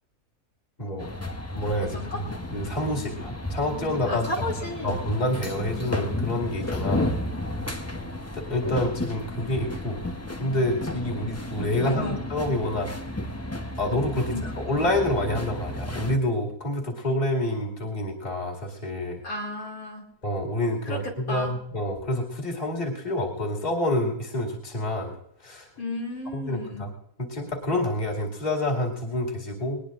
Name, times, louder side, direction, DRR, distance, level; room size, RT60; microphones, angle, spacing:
sound 1, 1.0-16.2, left 1 dB, 15° left, 0.7 m, -33 dB
voice 1, 1.5-2.2 2.5-4.3 4.8-7.1 7.6-7.8 8.3-10.0 10.4-12.9 13.8-19.2 20.2-25.7 26.3-26.9 27.2-29.8, left 1 dB, 30° left, -1 dB, 2.5 m, -28 dB
voice 2, 4.1-5.0 11.6-12.2 14.3-14.5 19.2-20.0 20.8-21.5 25.8-26.9, left 1 dB, 80° left, -1 dB, 3.3 m, -33 dB
21.0 x 19.5 x 2.5 m, 0.76 s
omnidirectional pair, 1.5 m